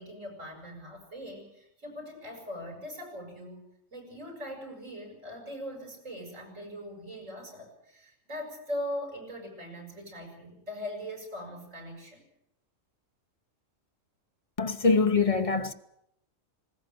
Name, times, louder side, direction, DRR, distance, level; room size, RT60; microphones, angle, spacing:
voice 1, 0.0-3.6 3.9-12.2, equal, 75° right, 7.2 m, -40 dB
voice 2, 14.6-15.7, left 4 dB, 30° left, 0.9 m, -24 dB
20.0 x 18.0 x 7.8 m
omnidirectional pair, 1.3 m